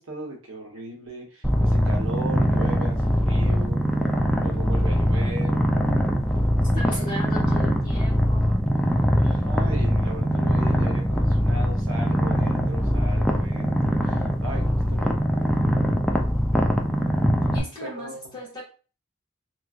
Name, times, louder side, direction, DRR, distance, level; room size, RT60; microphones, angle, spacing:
voice 1, 0.0-3.8 4.4-5.6 6.6-7.1 9.1-15.2 17.8-18.3, right 1 dB, 65° right, 1 dB, 0.9 m, -37 dB
Purr, 1.4-17.6, equal, 5° left, 0.3 m, -22 dB
voice 2, 6.7-8.6 17.5-18.6, left 1 dB, 20° left, -6 dB, 1.6 m, -36 dB
3.0 x 3.0 x 2.4 m, 0.36 s
head